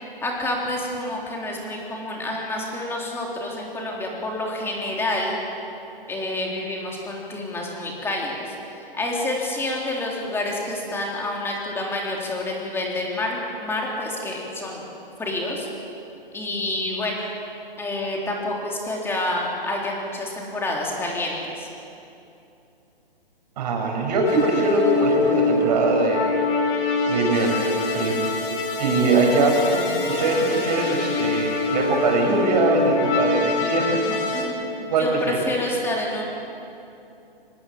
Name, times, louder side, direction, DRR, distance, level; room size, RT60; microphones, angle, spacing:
voice 1, 0.2-5.4 6.1-14.8 15.2-15.7 16.3-17.2 17.8-21.7 28.9-29.4 34.3-36.2, left 1 dB, 10° left, -2 dB, 3.8 m, -28 dB
voice 2, 23.6-26.4 27.1-28.2 28.8-34.0 34.3-34.6 34.9-35.4, right 3 dB, 45° right, 1 dB, 6.7 m, -22 dB
sound 1, 24.2-34.4, left 3 dB, 30° left, 3.1 m, -24 dB
25.5 x 19.5 x 7.7 m, 2.7 s
hypercardioid pair, 140°, 29 cm